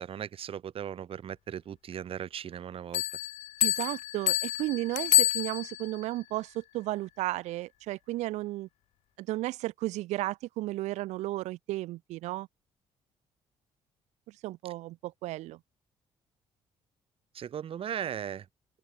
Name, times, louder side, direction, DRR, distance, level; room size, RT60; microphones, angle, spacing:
voice 1, 0.0-3.0 17.3-18.4, right 9 dB, 55° right, 1.2 m, -37 dB
Bell, 2.9-6.0, left 15 dB, 75° left, 0.6 m, -28 dB
voice 2, 3.6-8.7 9.2-12.5 14.4-15.6, right 17 dB, 90° right, 1.1 m, -34 dB
open air
cardioid pair, 85°, 11 cm